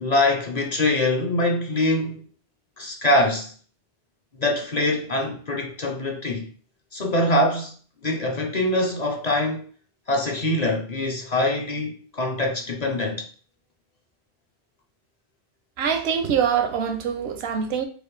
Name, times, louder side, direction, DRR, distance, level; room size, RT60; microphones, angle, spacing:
voice 1, 0.0-2.2 2.8-3.5 4.4-6.5 6.9-7.7 8.0-9.7 10.1-13.2, left 1 dB, 45° left, 0.6 m, -23 dB
voice 2, 15.8-17.8, right 7 dB, 80° right, 0.9 m, -24 dB
4.9 x 2.2 x 3.2 m
omnidirectional pair, 1.1 m